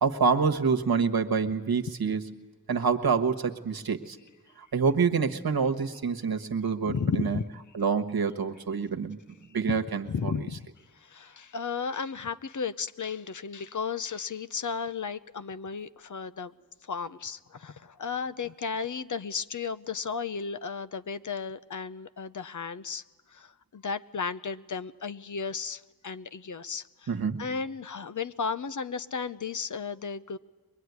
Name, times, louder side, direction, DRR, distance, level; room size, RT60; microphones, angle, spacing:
voice 1, 0.0-2.2 2.7-4.2 4.7-7.4 7.7-9.2 9.5-10.3 27.1-27.4, right 5 dB, 75° right, 5 dB, 1.4 m, -27 dB
voice 2, 6.9-7.4 9.7-9.8 10.1-10.6 10.9-16.5 16.8-23.0 23.3-27.1 27.4-30.4, left 5 dB, 55° left, 13 dB, 0.7 m, -34 dB
23.5 x 21.0 x 9.5 m, 1.2 s
wide cardioid pair, 75°, 36 cm